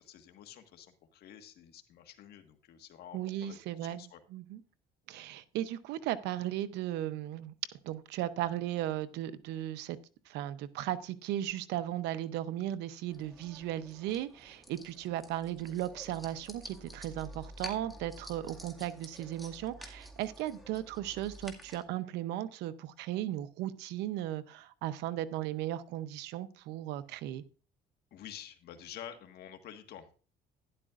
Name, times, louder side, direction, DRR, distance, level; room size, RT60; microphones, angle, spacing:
voice 1, 0.0-4.2 28.1-30.2, left 10 dB, 70° left, 6 dB, 1.6 m, -49 dB
voice 2, 3.1-4.6 5.1-7.5 7.8-10.0 10.3-27.4, right 13 dB, 90° right, 13 dB, 0.8 m, -36 dB
sound 1, 13.1-21.8, equal, ahead, 2.0 m, -50 dB
12.0 x 11.0 x 2.5 m, 0.39 s
cardioid pair, 110°, 17 cm